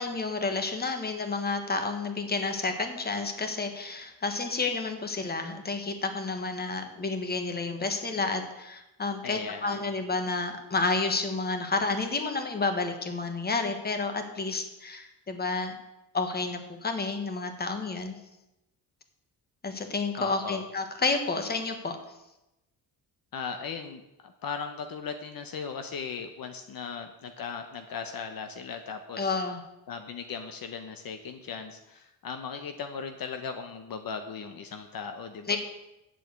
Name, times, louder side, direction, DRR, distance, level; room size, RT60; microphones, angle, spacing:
voice 1, 0.0-15.8 16.1-18.2 19.6-22.0 29.2-29.6 35.5-35.6, left 3 dB, 25° left, 6 dB, 1.4 m, -30 dB
voice 2, 9.2-9.9 20.2-20.6 23.3-29.4 29.9-35.6, left 6 dB, 60° left, 7 dB, 1.0 m, -38 dB
9.0 x 7.7 x 8.2 m, 0.93 s
wide cardioid pair, 155°, 40 cm